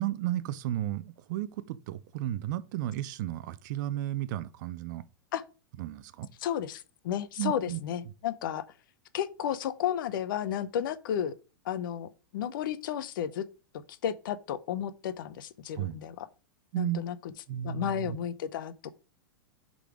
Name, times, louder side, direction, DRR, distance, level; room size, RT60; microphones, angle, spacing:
voice 1, 0.0-5.0 5.8-6.3 7.4-7.8 15.8-16.0 16.7-17.0 17.5-18.2, right 13 dB, 55° right, 0.5 m, -33 dB
voice 2, 6.4-8.6 9.1-11.3 11.6-13.4 14.0-16.3 16.8-17.2 17.6-18.7, left 9 dB, 70° left, 0.8 m, -32 dB
6.6 x 3.9 x 4.9 m
hypercardioid pair, 120°, 12 cm